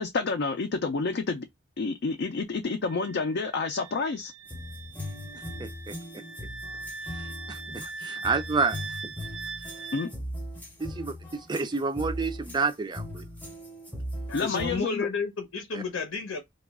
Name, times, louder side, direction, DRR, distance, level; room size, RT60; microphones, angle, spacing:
voice 1, 0.0-1.5 1.8-4.3 9.9-10.1 14.3-15.1, left 4 dB, 55° left, 0.4 m, -29 dB
Wind instrument woodwind instrument, 2.8-10.1, right 4 dB, 75° right, 0.5 m, -41 dB
sound 1, 4.5-14.8, equal, 10° left, 0.7 m, -39 dB
voice 2, 5.6-6.2 7.1-9.1 9.6-9.7 10.8-13.2 15.7-15.8, right 4 dB, 20° right, 0.4 m, -30 dB
voice 3, 14.3-16.4, left 4 dB, 85° left, 0.7 m, -31 dB
3.0 x 2.3 x 3.5 m
head